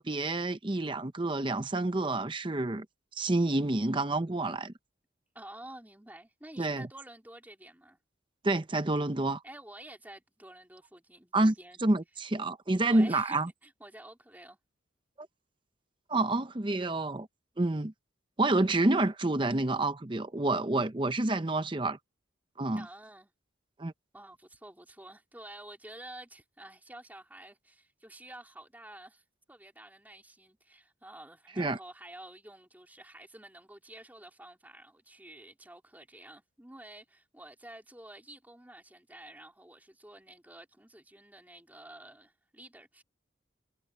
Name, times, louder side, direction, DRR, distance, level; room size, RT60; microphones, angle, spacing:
voice 1, 0.0-2.9 3.2-4.7 6.6-6.9 8.4-9.4 11.3-11.5 11.8-13.5 15.2-15.3 16.1-17.3 17.6-17.9 18.4-22.0 22.6-22.8 23.8-23.9 31.6-31.8, right 2 dB, 25° right, 0.7 m, -28 dB
voice 2, 5.3-8.0 9.4-11.8 12.8-14.6 22.7-23.3 24.1-43.0, right 1 dB, 10° right, 2.9 m, -50 dB
head